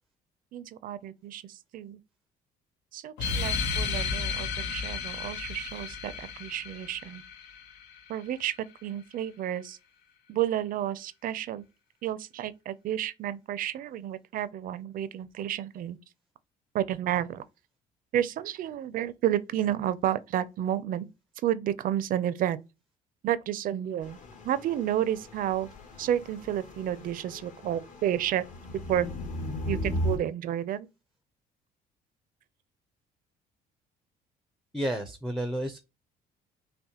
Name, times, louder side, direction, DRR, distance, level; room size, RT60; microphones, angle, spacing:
voice 1, 0.5-2.0 2.9-7.2 8.1-8.6 8.8-9.8 10.3-11.7 12.0-16.0 16.7-17.4 18.1-21.1 21.4-22.6 23.2-24.2 24.4-25.7 26.0-28.4 28.9-29.1 29.7-30.9, right 11 dB, 55° right, 0.4 m, -31 dB
sound 1, 3.2-8.2, left 5 dB, 85° left, 0.8 m, -33 dB
sound 2, 24.0-30.2, equal, 50° left, 1.3 m, -37 dB
voice 2, 34.7-35.8, right 1 dB, ahead, 0.5 m, -31 dB
5.5 x 2.1 x 2.8 m
cardioid pair, 110°, 17 cm